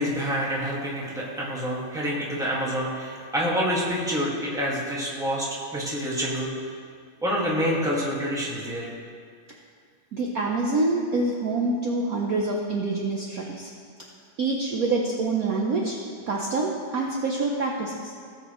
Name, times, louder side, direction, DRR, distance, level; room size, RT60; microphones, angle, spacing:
voice 1, 0.0-6.7 7.2-8.9, equal, ahead, -4 dB, 1.5 m, -27 dB
voice 2, 10.1-13.7 14.4-16.0 16.3-18.1, right 3 dB, 55° right, -1 dB, 1.1 m, -26 dB
17.5 x 7.2 x 3.1 m, 2.2 s
omnidirectional pair, 2.1 m